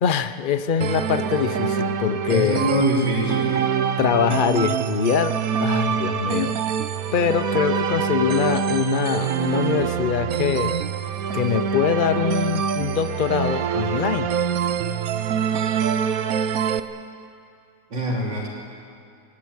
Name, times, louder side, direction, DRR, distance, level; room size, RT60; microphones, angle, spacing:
voice 1, 0.0-2.7 4.0-6.6 7.1-10.8 11.3-14.3, left 8 dB, 65° left, 11 dB, 0.5 m, -23 dB
sound 1, 0.8-16.8, right 7 dB, 60° right, 1.2 m, -25 dB
voice 2, 2.3-3.5 17.9-18.5, equal, 80° right, -3 dB, 4.0 m, -23 dB
21.0 x 18.5 x 9.6 m, 2.5 s
omnidirectional pair, 1.9 m